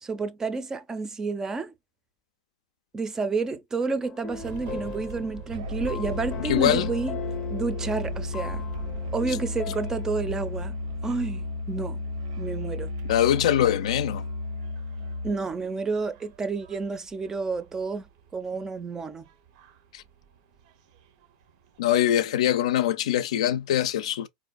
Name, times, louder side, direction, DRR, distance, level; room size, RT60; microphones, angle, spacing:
voice 1, 0.0-1.7 2.9-7.2 7.5-8.6 9.1-10.7 11.0-12.0 12.4-12.9 15.2-18.1 18.3-19.2, right 4 dB, 15° right, 0.4 m, -30 dB
sound 1, 4.0-10.5, left 8 dB, 30° left, 0.6 m, -40 dB
sound 2, 4.3-21.8, right 5 dB, 65° right, 0.6 m, -45 dB
Musical instrument, 5.5-15.4, left 2 dB, 85° right, 1.1 m, -33 dB
voice 2, 6.4-6.9 13.1-14.2 19.9-20.0 21.8-24.3, left 11 dB, 85° left, 0.4 m, -23 dB
4.0 x 2.6 x 2.3 m
supercardioid pair, 130°, 3 cm